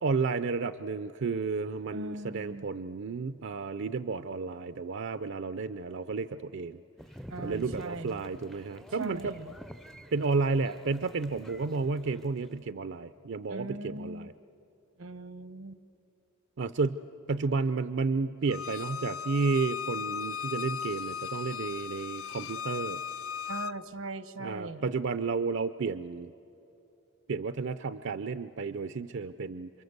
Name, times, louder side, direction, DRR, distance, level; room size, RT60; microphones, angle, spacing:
voice 1, 0.0-6.8 7.4-9.3 10.1-14.3 16.6-17.0 17.3-23.0 24.4-26.3 27.3-29.7, right 4 dB, 60° right, 12 dB, 0.5 m, -32 dB
voice 2, 1.9-2.6 7.3-8.2 9.0-9.6 13.5-14.3 15.0-15.8 23.5-24.9, right 2 dB, 85° right, 13 dB, 1.1 m, -40 dB
sound 1, 7.0-12.7, equal, ahead, 0.5 m, -48 dB
Bowed string instrument, 18.5-23.7, left 7 dB, 80° left, 0.6 m, -37 dB
28.0 x 24.5 x 8.0 m, 3.0 s
head